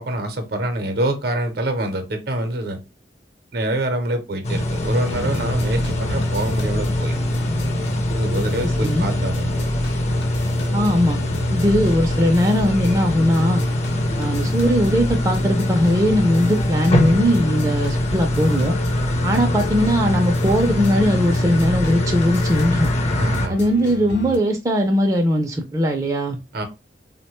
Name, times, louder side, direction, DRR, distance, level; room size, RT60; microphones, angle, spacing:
voice 1, 0.0-2.8 3.5-7.1 8.2-9.5 23.2-23.6 26.5-26.6, right 1 dB, 60° right, 0.6 m, -25 dB
sound 1, 4.4-23.5, left 1 dB, 40° left, 0.5 m, -23 dB
sound 2, 5.0-24.4, left 2 dB, 85° left, 0.7 m, -32 dB
voice 2, 8.6-9.1 10.7-11.2 11.5-13.6 14.2-18.7 19.2-22.9 23.5-26.4, equal, 20° right, 0.4 m, -19 dB
3.4 x 2.1 x 3.0 m
head